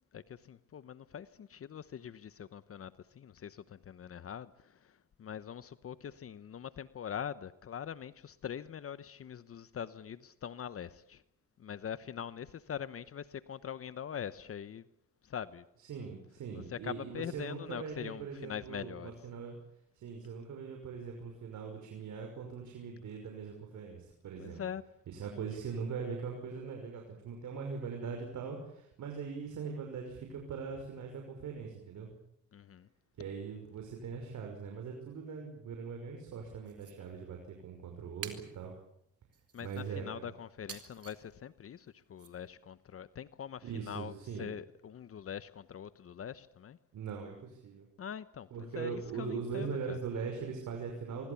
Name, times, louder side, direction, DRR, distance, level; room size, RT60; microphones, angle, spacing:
voice 1, 0.1-11.2 11.6-14.8 15.2-15.6 16.5-19.1 24.4-24.8 32.5-32.9 39.5-46.8 48.0-50.0, left 8 dB, 50° left, 1.0 m, -43 dB
voice 2, 15.9-19.6 19.9-24.6 25.1-32.1 33.2-38.7 39.6-40.2 43.6-44.5 46.9-47.9 48.5-51.3, right 5 dB, 70° right, 5.9 m, -41 dB
sound 1, 36.7-36.9 38.2-38.6 39.3-39.9 40.7-41.2 42.2-42.3, right 7 dB, 50° right, 4.3 m, -47 dB
25.5 x 24.0 x 7.1 m
cardioid pair, 90°, 30 cm